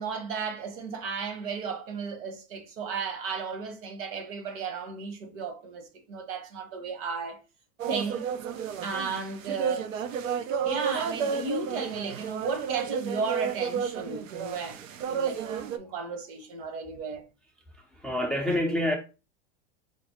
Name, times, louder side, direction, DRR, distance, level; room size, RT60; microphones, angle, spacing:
voice 1, 0.0-7.4 7.9-8.3 8.8-9.9 10.6-17.2, right 5 dB, 55° right, 1.2 m, -34 dB
sound 1, 7.8-15.8, right 7 dB, 90° right, 0.6 m, -32 dB
voice 2, 17.7-19.0, left 1 dB, ahead, 0.4 m, -28 dB
5.1 x 2.0 x 2.9 m
hypercardioid pair, 110°, 38 cm